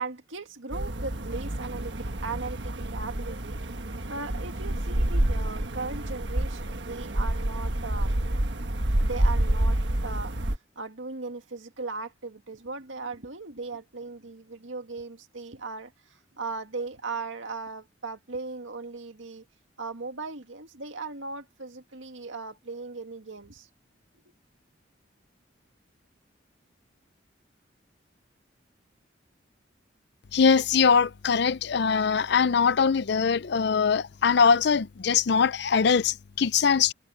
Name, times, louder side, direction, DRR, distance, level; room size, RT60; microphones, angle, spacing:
voice 1, 0.0-3.6 4.1-8.2 9.0-10.4 10.8-19.4 19.8-23.7, right 4 dB, 80° right, 2.0 m, -38 dB
sound 1, 0.7-10.6, right 1 dB, 65° right, 1.5 m, -28 dB
voice 2, 30.3-36.9, left 6 dB, 60° left, 0.5 m, -22 dB
head